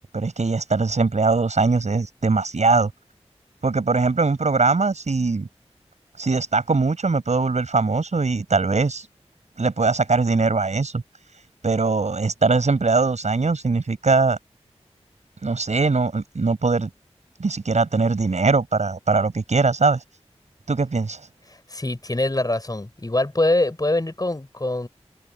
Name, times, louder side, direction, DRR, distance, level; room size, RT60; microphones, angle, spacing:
voice 1, 0.1-2.9 3.6-5.5 6.2-9.1 9.6-11.0 11.6-14.4 15.4-16.9 17.4-20.0 20.7-21.2, right 4 dB, 80° right, 6.8 m, -21 dB
voice 2, 21.5-24.9, left 2 dB, 35° left, 5.2 m, -24 dB
open air
wide cardioid pair, 50°, 12 cm